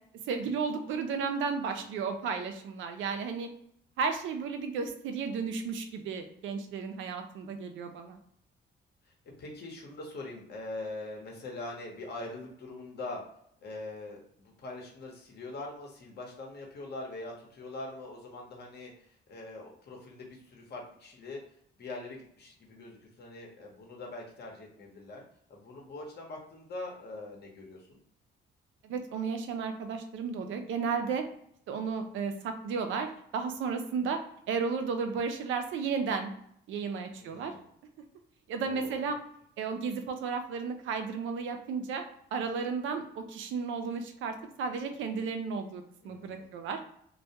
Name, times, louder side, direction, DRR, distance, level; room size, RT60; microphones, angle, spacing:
voice 1, 0.3-3.5 4.0-8.2 28.8-31.2 31.7-34.2 34.5-36.3 36.7-37.5 38.5-39.2 39.6-42.0 42.3-46.8, right 5 dB, 80° right, 6 dB, 0.5 m, -33 dB
voice 2, 9.4-13.2 13.6-18.9 19.3-21.4 21.8-25.2 25.5-28.0 37.2-37.7 38.6-38.9 46.0-46.6, left 2 dB, 55° left, -1 dB, 0.9 m, -43 dB
2.2 x 2.2 x 2.8 m, 0.68 s
cardioid pair, 90°, 20 cm